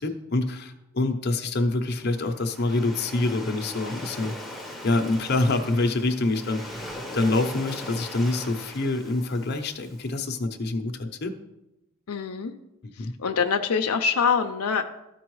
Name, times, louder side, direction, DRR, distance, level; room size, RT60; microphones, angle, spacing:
voice 1, 0.0-4.3 4.8-6.6 7.1-11.3 13.0-13.1, left 2 dB, 50° left, 5 dB, 0.7 m, -26 dB
Waves surf, 1.9-10.1, left 1 dB, ahead, 0.8 m, -40 dB
voice 2, 12.1-12.5 13.0-14.8, left 6 dB, 90° left, 6 dB, 0.5 m, -24 dB
13.0 x 4.6 x 3.1 m, 0.89 s
head